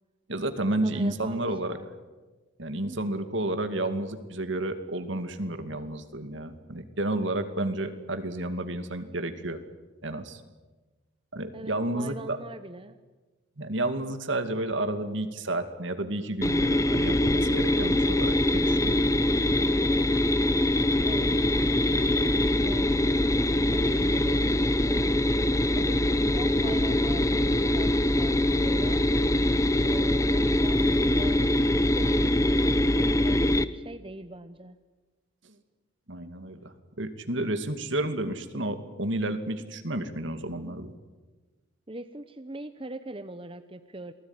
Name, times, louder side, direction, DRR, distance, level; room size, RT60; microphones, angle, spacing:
voice 1, 0.3-1.8 2.6-9.6 10.0-10.4 11.3-12.4 13.6-19.0 35.4-35.5 36.1-40.9, right 1 dB, 65° right, 8 dB, 2.4 m, -31 dB
voice 2, 0.8-1.9 2.8-3.0 11.5-13.0 21.0-21.3 22.1-25.2 25.7-29.1 29.8-34.8 41.9-44.1, right 1 dB, 25° right, 9 dB, 0.9 m, -42 dB
sound 1, 16.4-33.7, left 1 dB, 15° left, 0.8 m, -23 dB
28.5 x 20.0 x 9.8 m, 1.3 s
head